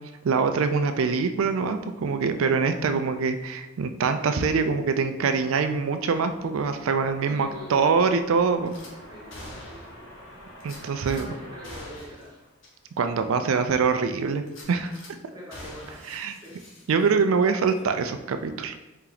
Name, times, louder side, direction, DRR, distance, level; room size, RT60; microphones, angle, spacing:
voice 1, 0.2-8.7 10.6-11.3 13.0-15.0 16.1-16.3 16.9-18.7, right 5 dB, 80° right, 8 dB, 0.4 m, -24 dB
sound 1, 4.9-13.0, equal, 85° left, 1.4 m, -48 dB
voice 2, 7.2-8.2 9.1-9.4 10.0-10.1 10.6-12.4 13.3-13.8 15.3-16.0 16.4-16.5, equal, 20° right, -7 dB, 1.4 m, -44 dB
Gunshot gunfire / Glass, 8.7-8.9 9.3-10.1 10.6-11.3 11.6-12.3 12.6-12.7 13.2-13.3 14.5-15.1 15.5-17.3 17.6-17.8, left 1 dB, 65° left, 0.9 m, -45 dB
4.5 x 2.8 x 3.9 m, 1.0 s
head